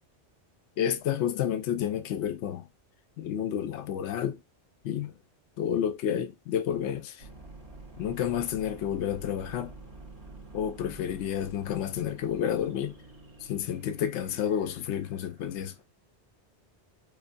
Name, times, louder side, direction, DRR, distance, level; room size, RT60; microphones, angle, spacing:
voice 1, 0.8-2.7 3.2-4.4 4.8-5.1 5.6-7.2 8.0-9.7 10.5-13.0 13.4-15.7, left 9 dB, 80° left, 0.9 m, -30 dB
sound 1, 7.2-15.8, right 2 dB, 35° right, 1.0 m, -49 dB
4.8 x 2.0 x 2.5 m
omnidirectional pair, 1.2 m